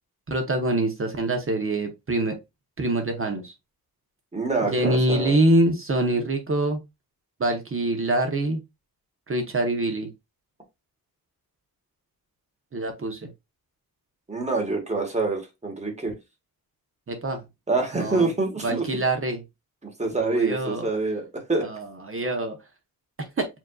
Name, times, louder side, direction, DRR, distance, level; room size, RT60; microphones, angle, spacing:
voice 1, 0.3-2.3 2.8-3.5 4.6-6.8 7.4-8.6 9.3-10.1 12.7-13.3 17.1-17.4 17.9-18.3 18.6-19.4 20.2-20.9 21.6-22.6 23.4-23.5, right 1 dB, 35° right, 4 dB, 0.7 m, -25 dB
voice 2, 4.3-5.4 14.3-16.1 17.7-18.9 19.8-21.7, right 3 dB, 20° right, 2 dB, 1.2 m, -26 dB
7.2 x 2.5 x 2.2 m, 0.22 s
wide cardioid pair, 180°, 36 cm